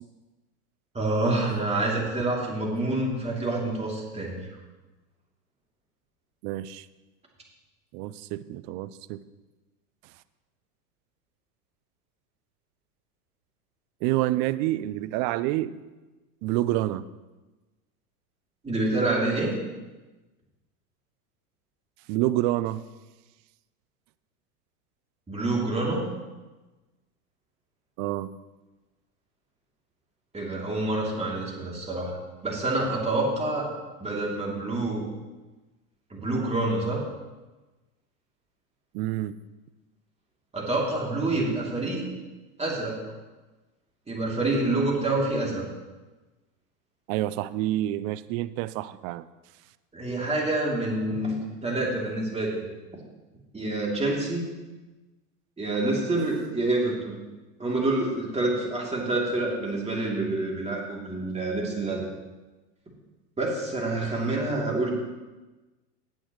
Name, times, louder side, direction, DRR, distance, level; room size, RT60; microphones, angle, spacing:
voice 1, 0.9-4.4 18.6-19.6 25.3-26.0 30.3-32.2 32.4-33.7 34.0-35.0 36.1-37.0 40.5-42.0 42.6-43.0 44.1-45.6 49.9-52.6 53.5-54.5 55.6-57.2 57.6-62.1 63.4-64.9, right 2 dB, 15° right, -2 dB, 3.0 m, -27 dB
voice 2, 6.4-6.9 7.9-9.2 14.0-15.8 16.4-17.0 22.1-22.8 28.0-28.3 38.9-39.3 47.1-49.2, right 15 dB, 45° right, 15 dB, 0.5 m, -28 dB
17.0 x 8.6 x 3.1 m, 1.2 s
hypercardioid pair, 100°, 46 cm